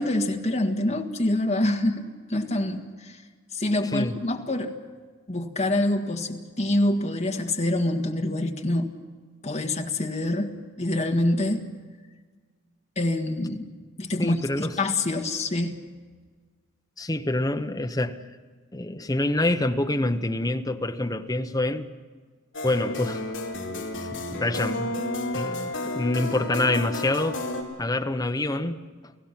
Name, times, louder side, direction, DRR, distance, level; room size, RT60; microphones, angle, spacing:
voice 1, 0.0-3.2 3.5-4.7 5.3-8.9 9.4-11.7 12.9-13.7 14.0-15.7, left 1 dB, 35° left, 1.7 m, -26 dB
voice 2, 14.2-14.7 17.0-18.2 18.7-21.9 22.6-23.2 24.1-25.1 25.3-27.4 27.8-28.9, left 1 dB, 15° left, 0.8 m, -26 dB
sound 1, 22.5-27.6, left 2 dB, 65° left, 3.9 m, -31 dB
30.0 x 16.5 x 5.9 m
head